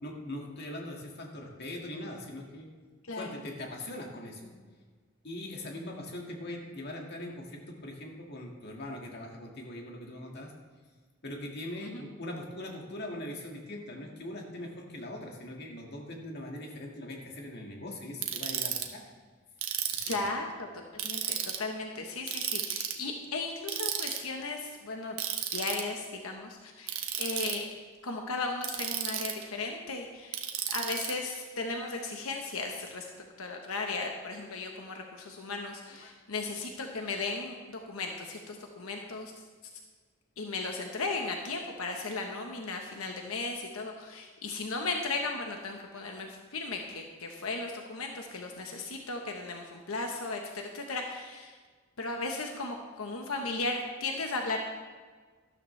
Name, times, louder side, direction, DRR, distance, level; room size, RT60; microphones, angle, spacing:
voice 1, 0.0-2.7 3.1-4.5 5.2-10.5 11.2-19.0 19.9-20.3 35.9-36.1, left 1 dB, 50° left, 0 dB, 1.9 m, -41 dB
Ratchet pawl, 18.2-18.8 19.6-20.3 21.0-21.6 22.3-23.0 23.7-24.2 25.2-25.8 26.9-27.6 28.6-29.4 30.3-31.1, right 10 dB, 80° right, 1.2 m, -33 dB
voice 2, 20.1-20.7 21.0-25.2 25.5-27.6 28.0-30.4 30.7-33.1 33.4-39.3 40.4-51.6 52.0-54.6, left 3 dB, 90° left, 2 dB, 1.1 m, -36 dB
12.5 x 12.5 x 3.2 m, 1.5 s
head